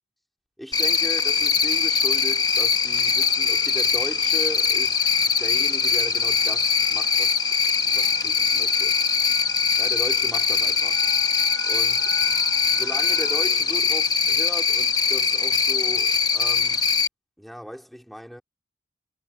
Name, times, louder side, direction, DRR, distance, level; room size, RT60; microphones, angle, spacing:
voice 1, 0.6-5.0 5.3-7.4 7.8-9.0 9.8-11.0 11.7-12.1 12.7-16.8 17.4-18.4, equal, ahead, 4.4 m, -37 dB
Cricket, 0.7-17.1, left 6 dB, 20° left, 1.5 m, -22 dB
sound 1, 1.6-13.7, right 4 dB, 70° right, 7.7 m, -43 dB
head